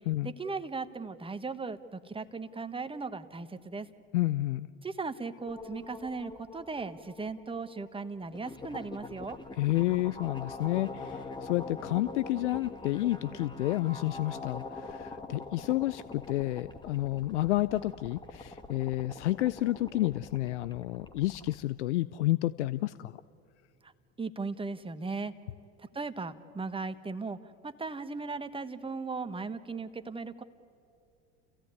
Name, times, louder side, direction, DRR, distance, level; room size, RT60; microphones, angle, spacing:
voice 1, 0.2-3.9 4.8-9.4 23.8-23.9 24.2-25.3 25.8-30.4, right 4 dB, 15° right, 11 dB, 1.3 m, -37 dB
voice 2, 4.1-4.7 9.6-23.2, left 16 dB, 90° left, 17 dB, 0.5 m, -30 dB
sound 1, 5.5-21.6, left 3 dB, 15° left, 1.5 m, -44 dB
29.0 x 16.0 x 9.5 m, 2.6 s
hypercardioid pair, 80°, 34 cm